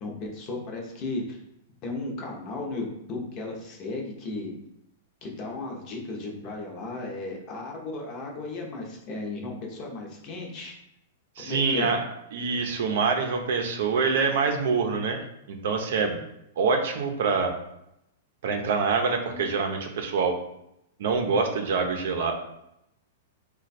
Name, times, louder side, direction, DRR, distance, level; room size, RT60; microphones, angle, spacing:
voice 1, 0.0-1.4 1.8-4.5 5.2-10.7 11.4-12.0 19.3-19.4, left 2 dB, 30° left, 0 dB, 0.8 m, -35 dB
voice 2, 11.4-12.0 12.3-16.2 16.6-17.5 18.4-20.3 21.0-22.3, right 5 dB, 60° right, 4 dB, 0.6 m, -25 dB
3.1 x 2.3 x 4.2 m, 0.82 s
supercardioid pair, 165°, 0 cm